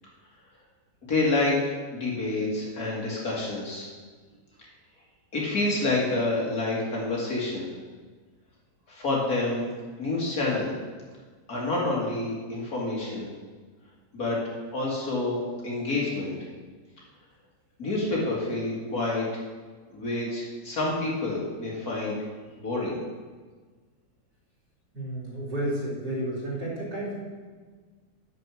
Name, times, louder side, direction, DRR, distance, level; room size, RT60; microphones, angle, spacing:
voice 1, 1.1-3.9 5.3-7.7 8.9-9.7 10.0-10.8 11.5-13.3 14.1-16.3 17.8-19.3 19.9-22.2 22.6-23.0, left 2 dB, 55° left, -4 dB, 2.7 m, -28 dB
voice 2, 24.9-27.1, right 1 dB, 70° right, -6 dB, 3.7 m, -31 dB
9.4 x 7.6 x 6.3 m, 1.5 s
omnidirectional pair, 1.9 m